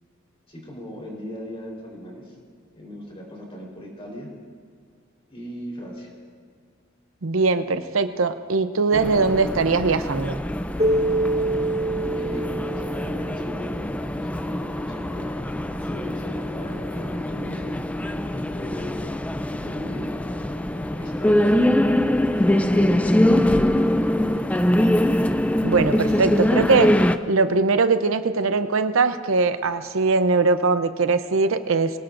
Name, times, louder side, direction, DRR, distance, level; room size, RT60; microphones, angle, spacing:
voice 1, 0.5-2.4 2.7-4.3 5.3-6.1 12.1-15.4 15.7-19.1 19.5-20.1 20.9-22.0 22.3-24.4, equal, 30° left, -2 dB, 4.0 m, -38 dB
voice 2, 7.2-10.4 25.6-26.9 27.3-31.9, right 4 dB, 80° right, 10 dB, 0.7 m, -21 dB
sound 1, 8.9-27.2, left 1 dB, 5° left, 0.4 m, -23 dB
Keyboard (musical), 10.8-14.0, right 2 dB, 30° right, 1.3 m, -26 dB
24.0 x 18.0 x 2.6 m, 2.1 s
head